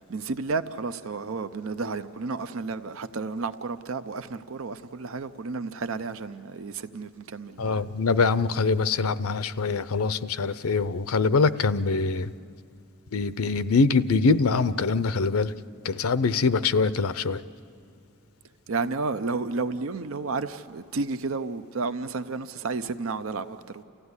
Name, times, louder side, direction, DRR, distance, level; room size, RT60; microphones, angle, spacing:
voice 1, 0.0-7.8 18.7-23.8, right 4 dB, 70° right, 0.6 m, -32 dB
voice 2, 7.6-12.3 13.1-15.5 15.8-17.4, left 4 dB, 90° left, 0.6 m, -24 dB
29.0 x 15.0 x 9.7 m
head